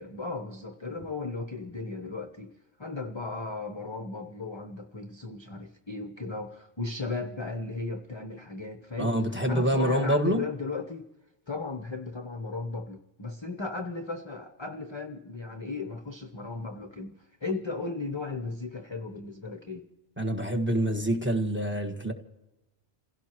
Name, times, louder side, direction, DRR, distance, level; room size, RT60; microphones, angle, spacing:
voice 1, 0.0-2.5 2.8-9.2 9.5-11.1 11.5-19.9, left 3 dB, 25° left, 0.8 m, -36 dB
voice 2, 9.0-10.4 20.2-22.1, right 1 dB, 10° right, 1.4 m, -26 dB
29.5 x 16.5 x 3.0 m
omnidirectional pair, 1.2 m